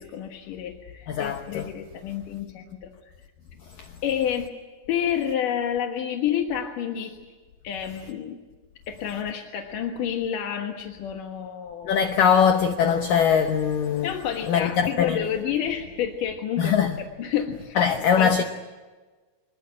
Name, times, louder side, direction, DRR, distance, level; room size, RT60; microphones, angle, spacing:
voice 1, 0.0-2.9 4.0-4.5 4.9-7.2 7.6-8.4 8.9-11.9 14.0-17.8 18.2-18.4, left 9 dB, 60° left, 2.4 m, -29 dB
voice 2, 1.1-1.7 11.9-14.1 14.5-15.2 16.6-17.0 17.8-18.4, left 7 dB, 80° left, 1.9 m, -21 dB
25.5 x 20.5 x 8.8 m
omnidirectional pair, 5.4 m